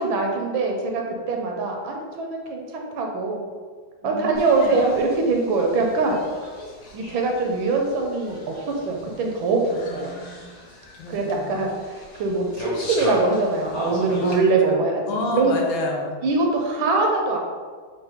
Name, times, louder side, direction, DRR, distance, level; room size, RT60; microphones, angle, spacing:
voice 1, 0.0-3.4 4.0-6.2 6.9-8.5 8.9-10.1 11.1-11.7 12.2-15.5 16.2-17.4, right 3 dB, 75° right, 1 dB, 1.4 m, -23 dB
voice 2, 4.0-4.8 9.7-10.6 11.0-11.7 14.2-14.4 14.7-16.2, left 2 dB, 75° left, 0 dB, 1.4 m, -30 dB
sound 1, 4.3-14.4, left 1 dB, 60° left, 1.4 m, -38 dB
4.5 x 2.3 x 4.8 m, 1.6 s
omnidirectional pair, 2.3 m